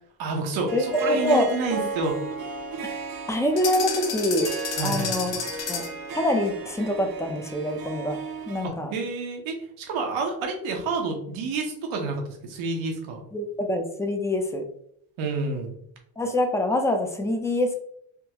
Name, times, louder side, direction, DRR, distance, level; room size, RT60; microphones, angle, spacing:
voice 1, 0.2-2.2 4.8-5.2 8.6-13.2 15.2-15.8, right 3 dB, 90° right, 3 dB, 0.9 m, -29 dB
voice 2, 0.7-1.5 2.9-3.0 3.3-4.5 4.8-5.4 5.7-5.8 6.1-8.2 8.5-8.9 13.3-14.6 16.2-17.7, left 1 dB, 5° left, 5 dB, 0.5 m, -25 dB
Harp, 0.7-8.7, right 3 dB, 50° right, 0.6 m, -34 dB
sound 1, 3.6-6.0, left 6 dB, 65° left, 0.7 m, -31 dB
3.6 x 2.2 x 2.8 m, 0.68 s
cardioid pair, 85°, 46 cm